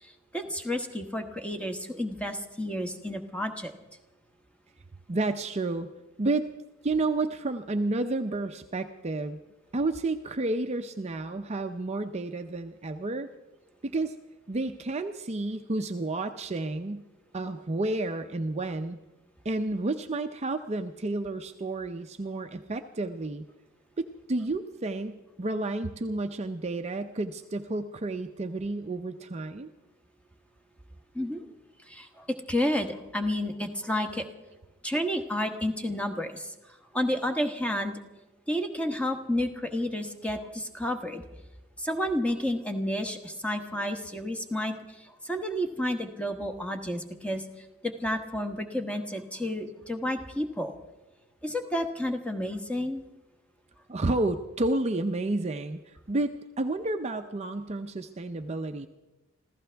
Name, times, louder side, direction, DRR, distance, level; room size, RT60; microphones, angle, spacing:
voice 1, 0.0-3.7 31.1-31.4 31.9-34.3 34.8-38.0 38.5-41.2 41.8-47.4 47.8-50.7 51.4-53.0, left 1 dB, 5° left, 6 dB, 1.2 m, -31 dB
voice 2, 5.1-5.9 6.2-6.5 6.8-9.4 9.7-13.3 13.8-14.1 14.5-17.0 17.3-19.0 19.4-23.4 24.0-29.7 53.9-55.8 56.1-58.9, right 2 dB, 30° right, 7 dB, 0.5 m, -31 dB
26.5 x 15.0 x 3.4 m, 1.1 s
head